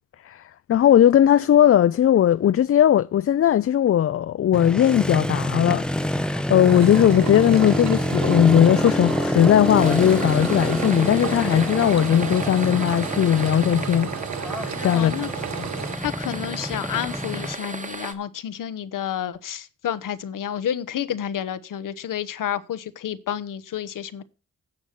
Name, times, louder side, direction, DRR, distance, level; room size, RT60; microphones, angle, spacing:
voice 1, 0.7-14.1 14.4-15.1, left 10 dB, 45° left, 0.4 m, -18 dB
Motorcycle, 4.5-17.5, equal, 5° left, 0.8 m, -27 dB
Engine, 6.6-16.0, right 9 dB, 55° right, 0.8 m, -33 dB
sound 1, 9.7-18.1, right 3 dB, 20° right, 1.5 m, -35 dB
voice 2, 14.9-15.3 16.0-24.2, left 9 dB, 70° left, 1.0 m, -30 dB
9.7 x 6.2 x 6.7 m
cardioid pair, 65°, 33 cm